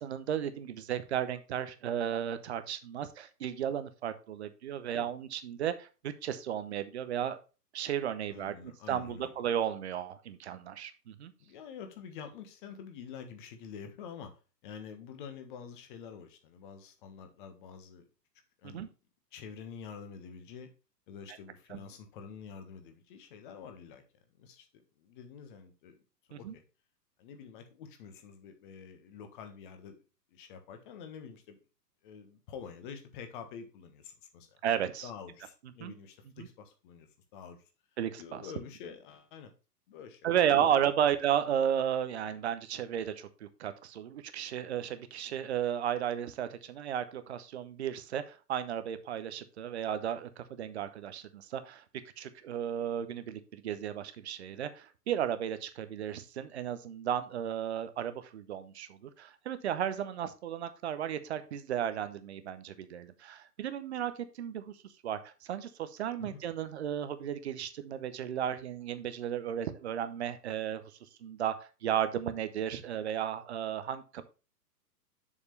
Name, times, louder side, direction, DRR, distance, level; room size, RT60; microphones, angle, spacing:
voice 1, 0.0-5.9 6.2-7.4 7.7-8.6 8.9-11.3 18.6-18.9 21.7-21.8 26.3-26.5 34.6-35.1 35.8-35.9 36.4-36.5 38.0-38.4 40.2-51.8 52.2-64.1 64.4-64.7 65.0-70.8 71.2-74.2, right 9 dB, 40° right, 12 dB, 0.9 m, -34 dB
voice 2, 8.3-9.3 11.4-14.3 14.6-18.0 18.6-18.8 19.3-20.7 21.1-24.0 24.4-24.7 25.0-26.0 26.3-26.6 27.2-30.0 30.3-31.6 32.0-34.6 35.0-37.6 38.2-39.5 39.9-40.7 41.0-41.1 66.2-66.4, left 6 dB, 30° left, 7 dB, 1.4 m, -47 dB
7.3 x 6.4 x 3.2 m, 0.32 s
figure-of-eight pair, 115°, 49 cm